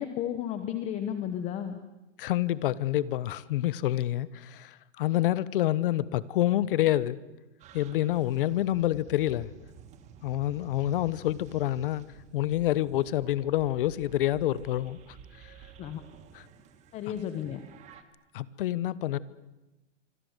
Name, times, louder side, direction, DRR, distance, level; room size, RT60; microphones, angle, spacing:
voice 1, 0.0-1.8 15.8-16.0 16.9-17.6, left 10 dB, 15° left, 1.1 m, -33 dB
voice 2, 2.2-7.2 7.7-9.5 10.2-12.0 12.3-15.5 16.3-16.5 18.3-19.2, left 14 dB, 45° left, 1.1 m, -28 dB
sound 1, 7.6-18.0, right 7 dB, 20° right, 1.7 m, -52 dB
26.0 x 25.0 x 8.1 m
hypercardioid pair, 165°, 37 cm